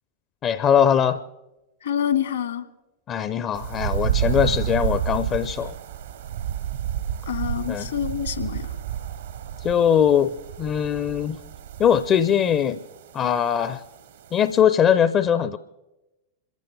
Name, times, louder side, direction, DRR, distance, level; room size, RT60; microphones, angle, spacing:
voice 1, 0.4-1.2 3.1-5.7 7.7-7.9 9.6-11.4 11.8-12.8 13.1-13.8 14.3-15.6, left 8 dB, 30° left, 13 dB, 0.6 m, -21 dB
voice 2, 1.8-2.6 7.3-8.7, left 9 dB, 65° left, 11 dB, 1.5 m, -26 dB
sound 1, 3.5-14.6, right 10 dB, 65° right, 0.9 m, -30 dB
26.5 x 14.5 x 3.4 m, 0.98 s
figure-of-eight pair, 90°, 0 cm